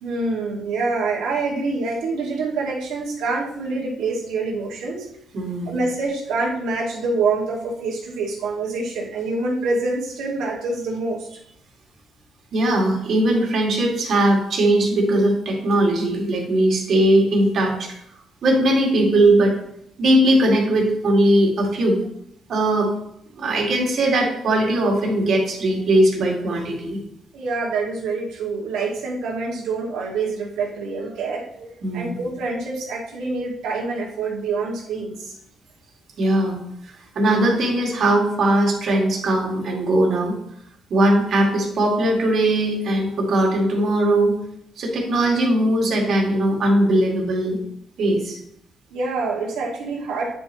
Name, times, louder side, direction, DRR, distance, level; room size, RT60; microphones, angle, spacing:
voice 1, 0.0-5.1 5.7-11.4 27.3-35.4 48.9-50.3, right 3 dB, 85° right, -3 dB, 2.0 m, -26 dB
voice 2, 5.3-5.8 12.5-18.0 18.4-19.5 20.0-22.0 22.5-22.9 23.4-27.0 31.8-32.3 36.2-40.4 40.9-44.4 44.8-47.6 48.0-48.4, right 1 dB, 60° right, -1 dB, 2.2 m, -19 dB
9.1 x 5.4 x 3.1 m, 0.73 s
cardioid pair, 90°, 0 cm